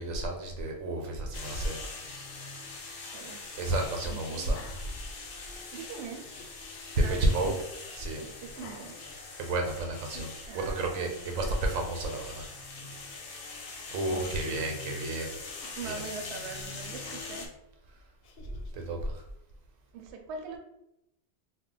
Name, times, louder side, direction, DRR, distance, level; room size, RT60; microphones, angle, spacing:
voice 1, 0.0-1.8 3.6-4.8 7.0-7.5 8.0-8.2 9.4-12.4 13.9-15.4 15.8-16.0 18.7-19.2, right 1 dB, 90° right, 2 dB, 1.0 m, -31 dB
sound 1, 1.3-17.5, left 3 dB, 60° left, 0.6 m, -43 dB
voice 2, 3.1-3.6 4.1-4.6 5.7-6.3 7.0-7.5 8.2-9.0 10.5-11.2 14.1-14.5 15.8-17.5 19.9-20.6, right 5 dB, 65° right, 3 dB, 0.8 m, -42 dB
Laughter, 4.3-5.4 5.8-6.5 7.3-7.8 8.5-9.7 10.1-10.4 11.3-11.9 12.4-12.5 12.6-13.0 14.1-14.7 15.5-15.8 16.9-17.4 18.2-18.8, left 3 dB, 90° left, 1.0 m, -52 dB
2.3 x 2.0 x 3.8 m, 0.84 s
omnidirectional pair, 1.4 m